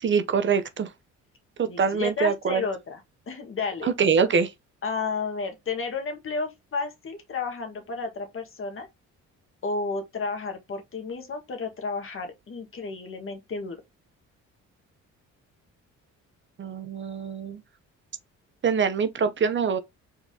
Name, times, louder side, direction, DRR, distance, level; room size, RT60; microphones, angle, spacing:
voice 1, 0.0-0.9 1.6-2.6 3.8-4.5 16.6-17.6 18.6-19.8, right 6 dB, 40° right, 0.6 m, -24 dB
voice 2, 1.7-3.0 3.3-3.9 4.8-8.9 9.6-13.8, left 4 dB, 45° left, 1.5 m, -32 dB
4.6 x 4.2 x 2.7 m
cardioid pair, 90°, 30 cm